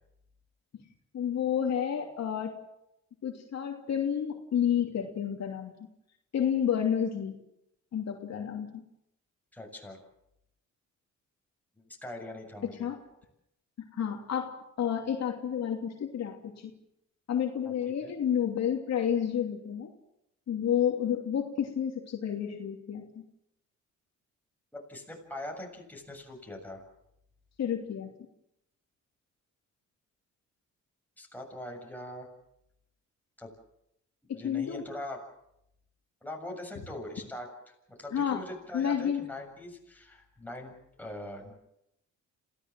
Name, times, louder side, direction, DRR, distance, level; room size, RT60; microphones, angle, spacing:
voice 1, 1.1-2.6 3.2-5.7 6.3-7.3 7.9-8.8 12.7-13.0 13.9-16.7 17.3-19.9 20.5-23.2 27.6-28.1 34.3-34.8 38.1-38.4 38.7-39.3, left 8 dB, 60° left, 2 dB, 2.8 m, -30 dB
voice 2, 9.5-10.0 12.0-12.9 17.6-17.7 18.0-18.1 24.7-26.8 31.2-32.3 33.4-33.5 34.3-35.2 36.2-40.7 41.0-41.5, left 1 dB, 5° left, 0 dB, 7.4 m, -42 dB
27.0 x 16.5 x 7.7 m, 0.81 s
cardioid pair, 90°, 30 cm